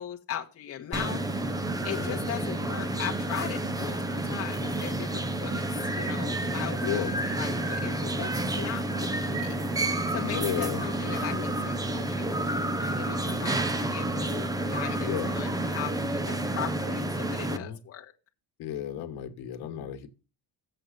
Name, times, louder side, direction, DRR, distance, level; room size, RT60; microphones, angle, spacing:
voice 1, 0.0-1.4 1.8-5.6 5.9-18.0, left 10 dB, 30° left, 1.1 m, -38 dB
sound 1, 0.9-17.6, right 1 dB, 10° right, 0.4 m, -30 dB
voice 2, 1.9-2.2 6.8-7.1 10.0-10.9 15.0-15.3 17.5-17.8 18.6-20.1, left 10 dB, 60° left, 1.6 m, -34 dB
7.7 x 6.8 x 6.5 m
cardioid pair, 165°, 44 cm